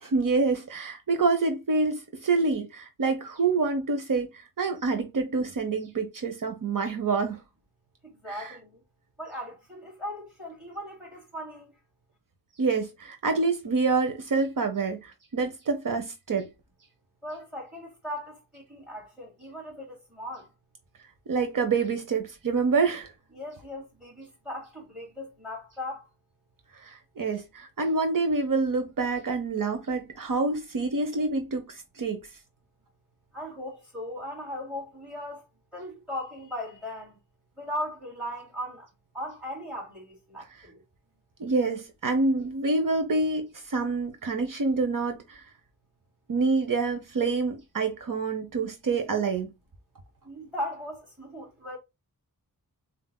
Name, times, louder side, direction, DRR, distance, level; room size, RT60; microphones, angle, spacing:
voice 1, 0.0-7.4 8.3-8.5 12.6-16.5 21.3-23.1 26.8-32.2 41.4-45.4 46.3-49.5, right 4 dB, 60° right, 0.9 m, -27 dB
voice 2, 8.0-8.8 9.2-11.7 17.2-20.5 23.3-26.1 33.3-35.4 35.7-37.2 37.6-38.9 39.1-40.8 50.2-51.8, left 1 dB, ahead, 3.1 m, -38 dB
7.4 x 2.7 x 2.3 m
wide cardioid pair, 130°, 36 cm